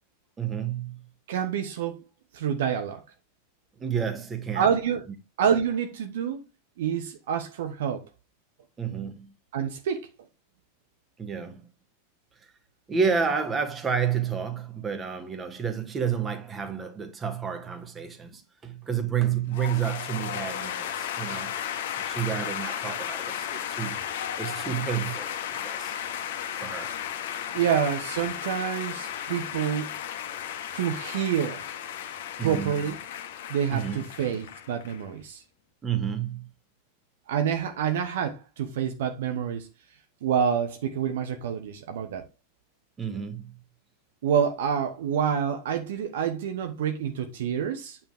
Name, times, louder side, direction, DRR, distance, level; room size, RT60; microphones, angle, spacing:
voice 1, 0.4-1.0 3.8-4.7 8.8-9.3 11.2-11.7 12.9-21.5 22.0-24.0 24.4-26.0 26.5-26.9 27.5-27.6 32.4-32.7 33.7-34.0 35.8-36.5 43.0-43.5, right 7 dB, 20° right, 2.0 m, -30 dB
voice 2, 1.3-2.0 2.3-3.0 4.5-5.0 5.4-6.4 6.8-8.0 9.5-10.1 27.5-29.9 30.7-31.6 32.4-33.0 33.5-35.4 37.3-39.7 40.2-42.2 44.2-48.0, right 8 dB, 55° right, 1.2 m, -27 dB
sound 1, 19.5-35.0, left 9 dB, 55° left, 1.5 m, -34 dB
9.1 x 7.4 x 3.5 m
figure-of-eight pair, 90°, 0 cm